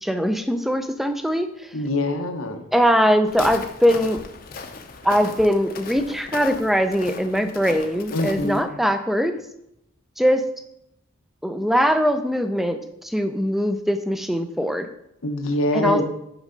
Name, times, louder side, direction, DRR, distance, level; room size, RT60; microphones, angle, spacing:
voice 1, 0.0-1.7 2.7-4.2 5.0-9.4 10.2-10.5 11.4-14.9 15.7-16.0, equal, ahead, 9 dB, 0.4 m, -21 dB
voice 2, 1.7-2.6 8.1-8.6 15.2-16.0, left 1 dB, 90° left, 5 dB, 1.0 m, -24 dB
Walk footsteps, 3.3-8.6, left 4 dB, 45° left, 0.6 m, -37 dB
6.1 x 5.5 x 5.1 m, 0.80 s
head